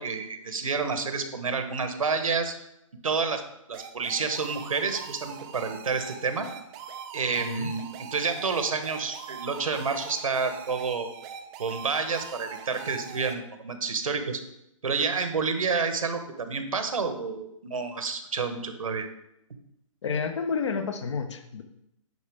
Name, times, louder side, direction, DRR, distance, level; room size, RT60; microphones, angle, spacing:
voice 1, 0.0-2.5 3.0-3.4 3.7-6.5 7.1-7.9 8.1-11.1 11.6-14.4 14.8-19.1, right 4 dB, 85° right, 8 dB, 1.2 m, -29 dB
sound 1, 3.7-13.3, right 7 dB, 15° right, 0.4 m, -42 dB
voice 2, 7.4-7.7 20.0-21.6, left 5 dB, 60° left, 8 dB, 1.1 m, -30 dB
9.4 x 5.5 x 3.6 m, 0.81 s
hypercardioid pair, 155°, 17 cm